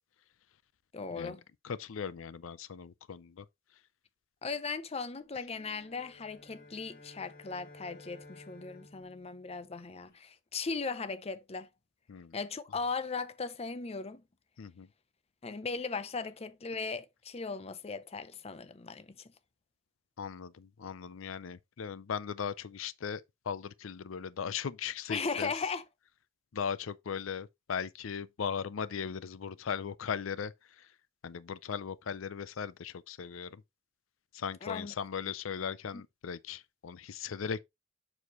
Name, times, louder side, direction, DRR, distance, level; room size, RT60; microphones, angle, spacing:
voice 1, 0.9-1.4 4.4-11.7 12.3-14.2 15.4-19.3 25.1-25.8 34.6-34.9 35.9-36.0, left 4 dB, 30° left, 0.6 m, -38 dB
voice 2, 1.6-3.5 12.1-12.4 14.6-14.9 20.2-25.5 26.5-30.5 31.2-33.6 34.3-37.6, left 7 dB, 90° left, 0.5 m, -38 dB
sound 1, 5.4-10.1, left 2 dB, 50° left, 4.6 m, -55 dB
7.2 x 6.4 x 3.0 m
head